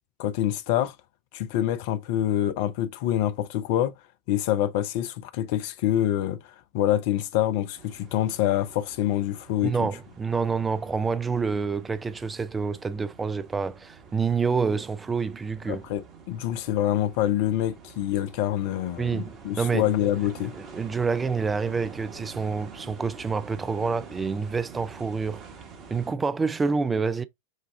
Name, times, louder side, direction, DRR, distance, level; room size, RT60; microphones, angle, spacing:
voice 1, 0.2-0.9 1.3-3.9 4.3-9.9 15.7-20.5, left 12 dB, 50° left, 0.6 m, -26 dB
sound 1, 7.7-26.1, right 5 dB, 35° right, 1.2 m, -47 dB
voice 2, 9.6-15.8 19.0-19.9 20.7-25.4 25.9-27.2, right 5 dB, 15° right, 0.4 m, -27 dB
6.4 x 2.4 x 3.4 m
figure-of-eight pair, 90°, 0 cm